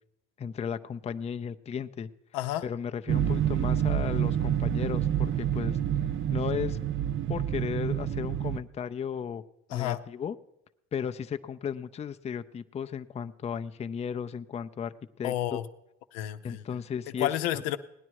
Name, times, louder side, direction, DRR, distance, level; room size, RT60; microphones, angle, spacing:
voice 1, 0.4-2.1 2.6-5.8 6.3-6.8 7.3-9.4 9.7-10.4 10.9-15.6 16.4-17.3, left 7 dB, 20° left, 10 dB, 0.5 m, -35 dB
voice 2, 2.3-2.6 9.7-10.0 15.2-15.6 16.1-16.6 17.2-17.8, left 13 dB, 90° left, 10 dB, 0.7 m, -30 dB
sound 1, 3.1-8.6, right 10 dB, 40° right, 0.6 m, -28 dB
17.5 x 9.8 x 4.6 m, 0.88 s
supercardioid pair, 95°, 30 cm